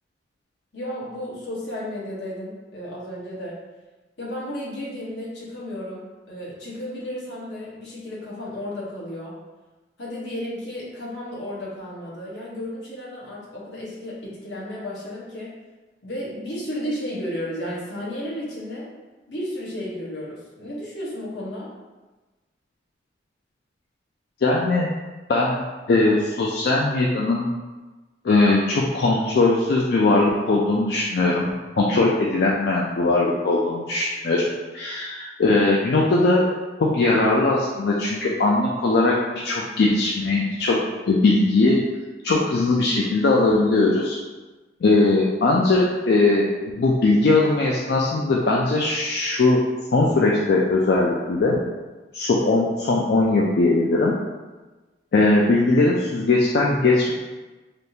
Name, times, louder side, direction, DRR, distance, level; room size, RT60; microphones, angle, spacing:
voice 1, 0.7-3.6 4.2-9.4 10.0-15.6 16.0-18.9 19.3-21.7, left 1 dB, 80° left, -6 dB, 1.0 m, -33 dB
voice 2, 24.4-24.9 25.3-25.6 25.9-27.5 28.2-31.5 31.8-34.5 34.7-36.4 36.8-40.8 41.1-41.8 42.2-44.2 44.8-46.5 46.8-49.6 49.9-51.6 52.1-54.1 55.1-57.1, left 2 dB, 60° left, -3 dB, 0.4 m, -20 dB
3.4 x 2.5 x 2.7 m, 1.2 s
head